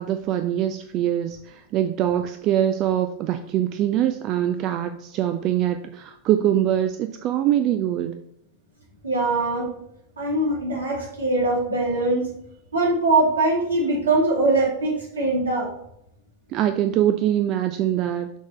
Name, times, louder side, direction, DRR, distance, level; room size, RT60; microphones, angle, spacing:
voice 1, 0.0-8.2 16.5-18.3, right 11 dB, 35° right, 8 dB, 0.3 m, -23 dB
voice 2, 9.0-9.7 10.2-12.3 12.7-15.7, right 2 dB, 70° right, -5 dB, 2.5 m, -22 dB
6.3 x 3.6 x 4.4 m, 0.76 s
figure-of-eight pair, 90°, 0 cm